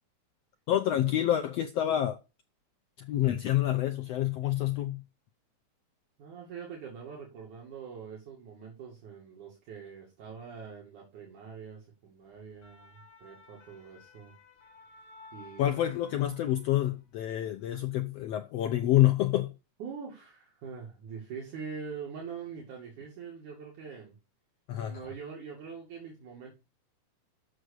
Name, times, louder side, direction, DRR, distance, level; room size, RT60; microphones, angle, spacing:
voice 1, 0.7-2.2 3.0-5.0 15.6-19.5 24.7-25.0, left 13 dB, 80° left, 1.5 m, -27 dB
voice 2, 6.2-14.3 15.3-15.8 19.8-24.2 24.8-26.5, right 6 dB, 70° right, 3.8 m, -44 dB
sound 1, 12.4-17.1 17.5-17.7, left 3 dB, 50° left, 2.5 m, -55 dB
7.8 x 6.5 x 6.6 m
omnidirectional pair, 3.6 m